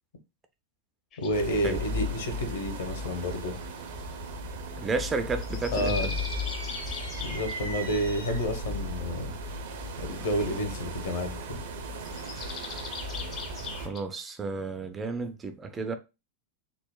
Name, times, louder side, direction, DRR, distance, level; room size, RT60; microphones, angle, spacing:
sound 1, 1.1-1.4 2.9-4.1 5.3-7.6 12.0-14.0, left 7 dB, 30° left, 0.6 m, -41 dB
voice 1, 1.2-3.6 5.7-6.1 7.2-9.3 10.0-11.6, equal, 60° left, 0.9 m, -30 dB
sound 2, 1.3-13.9, left 1 dB, 60° right, 0.6 m, -36 dB
voice 2, 4.8-6.1 13.7-16.0, right 4 dB, 20° right, 0.4 m, -32 dB
sound 3, 5.7-8.6, right 1 dB, 85° right, 1.4 m, -39 dB
3.8 x 2.0 x 2.3 m
figure-of-eight pair, 90°, 0 cm